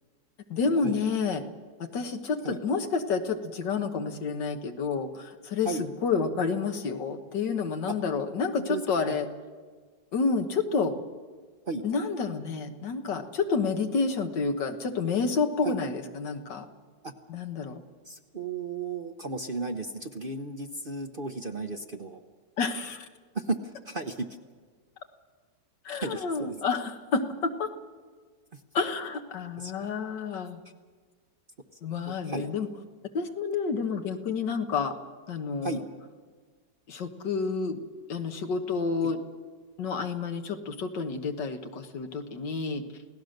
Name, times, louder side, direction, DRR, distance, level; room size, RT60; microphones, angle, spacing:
voice 1, 0.5-1.4 1.8-9.3 10.1-10.9 11.8-16.7 17.3-17.8 22.6-23.1 25.9-27.7 28.7-30.6 31.8-32.7 33.1-34.9 35.3-35.8 36.9-37.8 38.1-39.2 39.8-42.8, left 5 dB, 80° left, 6 dB, 1.9 m, -29 dB
voice 2, 18.1-22.2 23.3-23.6 23.9-24.3 25.9-26.5 29.6-29.9 32.2-32.5 35.6-35.8, right 3 dB, 40° right, 6 dB, 0.8 m, -34 dB
28.5 x 17.5 x 6.6 m, 1.5 s
omnidirectional pair, 1.9 m